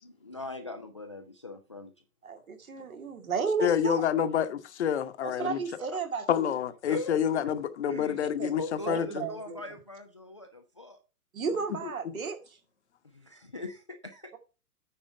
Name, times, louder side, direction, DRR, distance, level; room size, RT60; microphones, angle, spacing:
voice 1, 0.0-1.9 5.4-6.0 6.8-7.2 7.4-7.6 7.9-8.3 8.6-11.0 13.0-14.3, left 3 dB, 25° left, 0.3 m, -41 dB
voice 2, 2.2-4.1 5.2-6.5 8.0-8.1 8.4-8.5 8.9-9.6 11.3-12.4, right 5 dB, 65° right, 2.1 m, -33 dB
voice 3, 3.6-5.6 6.3-8.6 8.9-9.3 11.8-11.9, left 9 dB, 50° left, 1.0 m, -28 dB
8.9 x 4.8 x 5.6 m
figure-of-eight pair, 120°, 45 cm